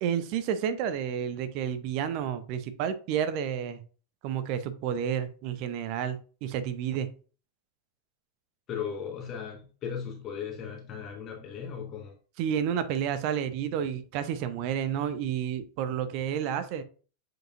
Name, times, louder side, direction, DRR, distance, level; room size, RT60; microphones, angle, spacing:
voice 1, 0.0-3.8 4.2-7.1 12.4-16.8, right 8 dB, 45° right, 0.8 m, -30 dB
voice 2, 8.7-12.1, left 7 dB, 30° left, 1.5 m, -37 dB
7.5 x 5.0 x 2.6 m
figure-of-eight pair, 90°, 0 cm